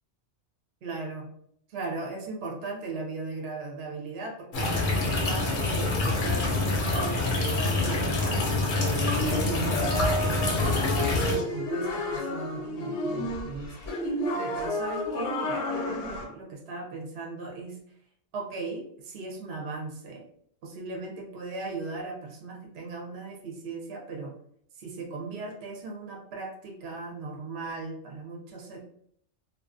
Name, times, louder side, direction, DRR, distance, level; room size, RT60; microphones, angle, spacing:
voice 1, 0.8-1.3 1.7-8.4 8.8-10.7 11.3-13.9 14.3-17.8 18.3-20.2 20.6-24.3 24.7-28.8, right 3 dB, 65° right, 0 dB, 0.8 m, -37 dB
sound 1, 4.5-11.4, left 2 dB, 55° left, 0.6 m, -26 dB
sound 2, 9.2-16.2, left 1 dB, 85° left, 0.9 m, -31 dB
2.4 x 2.2 x 2.4 m, 0.66 s
omnidirectional pair, 1.2 m